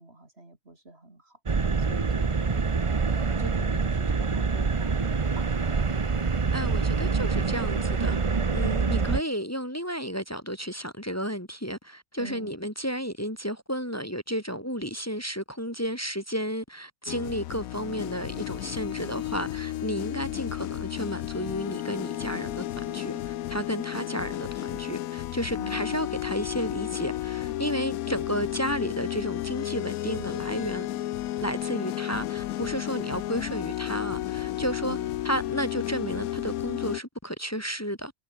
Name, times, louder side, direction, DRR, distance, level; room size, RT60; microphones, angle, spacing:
voice 1, 0.0-1.4 1.8-2.8 3.4-6.0 12.2-12.5 25.5-26.2 34.8-35.1, right 2 dB, 45° right, 4.1 m, -44 dB
sound 1, 1.5-9.2, right 4 dB, 30° right, 0.7 m, -26 dB
voice 2, 6.5-8.2 8.5-30.9 31.4-35.0 35.2-38.1, equal, 10° left, 3.5 m, -32 dB
sound 2, 17.1-37.0, left 14 dB, 85° left, 1.1 m, -33 dB
omnidirectional pair, 1.5 m